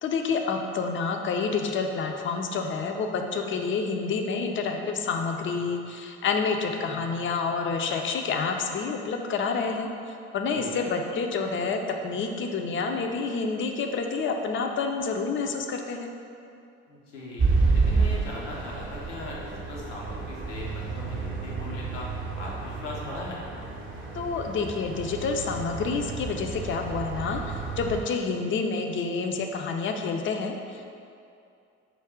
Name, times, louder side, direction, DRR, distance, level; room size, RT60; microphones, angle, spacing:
voice 1, 0.0-9.9 10.3-16.1 24.1-30.9, left 4 dB, 35° left, 4 dB, 0.5 m, -28 dB
voice 2, 10.5-10.9 16.9-17.5 17.7-23.4, left 2 dB, 90° left, -4 dB, 0.8 m, -39 dB
sound 1, 17.4-28.0, right 4 dB, 35° right, 0.8 m, -30 dB
4.6 x 2.3 x 3.6 m, 2.5 s
hypercardioid pair, 55°, 35 cm